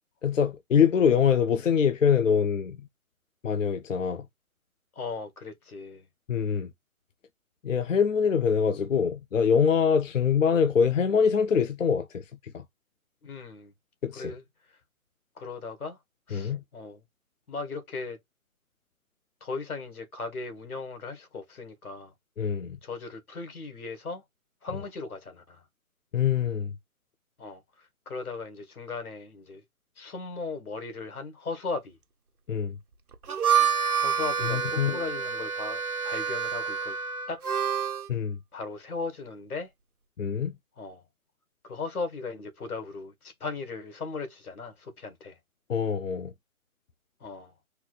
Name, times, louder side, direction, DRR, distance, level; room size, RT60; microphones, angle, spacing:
voice 1, 0.2-2.9 3.4-4.3 6.3-6.7 7.6-12.6 14.0-14.3 16.3-16.6 22.4-22.8 26.1-26.7 32.5-32.8 34.5-35.0 38.1-38.4 40.2-40.5 45.7-46.3, left 7 dB, 60° left, 0.7 m, -24 dB
voice 2, 4.9-6.1 13.2-13.7 14.1-14.4 14.7-14.8 15.3-16.0 16.3-17.0 17.5-18.2 19.4-22.1 22.8-24.2 24.6-25.6 27.4-29.6 30.0-32.0 33.6-33.7 34.0-37.0 37.3-37.4 38.5-39.7 40.8-41.0 41.6-45.4 47.2-47.5, left 4 dB, 80° left, 1.7 m, -37 dB
Harmonica, 33.1-38.1, right 7 dB, 85° right, 1.2 m, -28 dB
4.3 x 2.5 x 3.9 m
hypercardioid pair, 175°, 43 cm